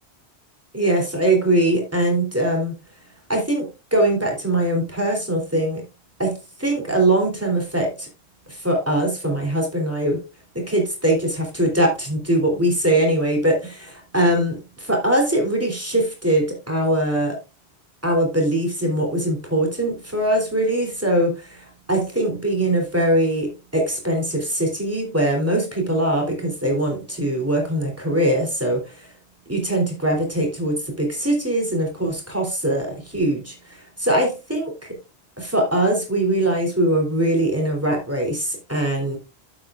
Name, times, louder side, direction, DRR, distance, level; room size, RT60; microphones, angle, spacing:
voice 1, 0.7-2.7 3.3-5.8 6.2-8.1 8.5-10.2 10.5-17.4 18.0-29.1 29.5-34.9 35.4-39.2, right 1 dB, 15° right, 0 dB, 3.3 m, -22 dB
12.0 x 7.9 x 2.5 m, 0.28 s
omnidirectional pair, 1.1 m